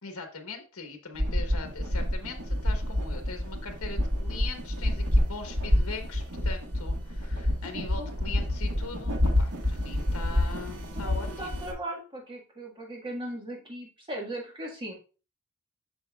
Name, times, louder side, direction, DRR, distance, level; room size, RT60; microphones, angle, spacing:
voice 1, 0.0-11.6, left 4 dB, 70° left, 5 dB, 1.3 m, -41 dB
sound 1, 1.1-11.7, left 1 dB, 85° right, 1.7 m, -27 dB
voice 2, 7.7-8.1 10.9-14.9, right 1 dB, 20° right, -1 dB, 1.7 m, -38 dB
7.7 x 6.1 x 2.4 m, 0.34 s
head